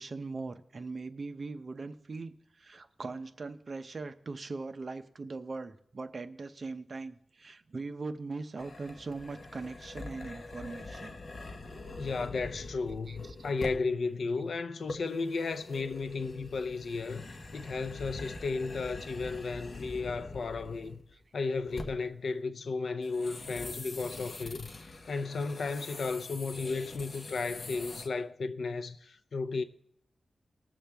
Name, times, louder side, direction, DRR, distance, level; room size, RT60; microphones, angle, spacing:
voice 1, 0.0-11.2 11.7-12.1 13.1-13.4 17.5-17.7 21.1-21.2, right 3 dB, 50° right, 0.7 m, -41 dB
sound 1, 8.6-14.0 14.9-21.2 21.5-22.1 23.0-28.1, left 2 dB, 50° left, 1.2 m, -44 dB
voice 2, 12.0-17.3 17.5-21.0 21.3-29.6, left 4 dB, 75° left, 0.6 m, -34 dB
20.0 x 7.1 x 3.5 m
wide cardioid pair, 105°, 0 cm